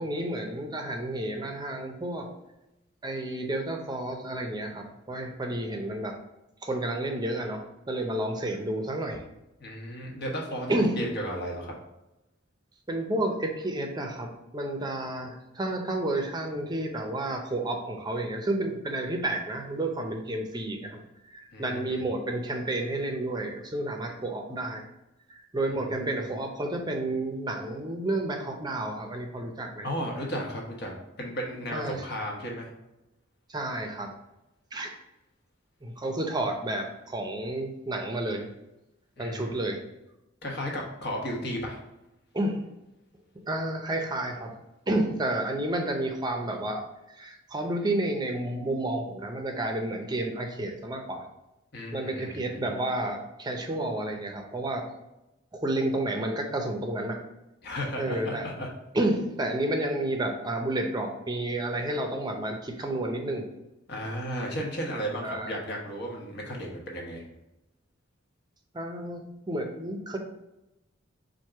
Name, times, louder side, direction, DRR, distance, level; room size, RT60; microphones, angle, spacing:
voice 1, 0.0-2.3 3.0-6.1 6.6-9.2 10.7-11.0 12.9-21.0 21.3-24.8 25.3-29.9 31.7-32.1 33.5-34.1 34.7-35.0 35.8-38.4 39.2-39.8 42.3-42.6 43.5-44.5 44.9-46.8 47.1-51.2 51.9-54.9 55.5-57.2 58.0-58.4 58.9-63.5 65.2-65.5 68.7-70.2, right 1 dB, 20° right, 3 dB, 0.6 m, -31 dB
voice 2, 9.6-11.7 21.5-22.0 25.7-26.2 29.8-32.7 39.2-39.5 40.4-41.8 51.7-52.6 57.6-58.7 63.9-67.2, equal, 55° left, -1 dB, 1.2 m, -34 dB
4.5 x 2.6 x 4.6 m, 0.94 s
head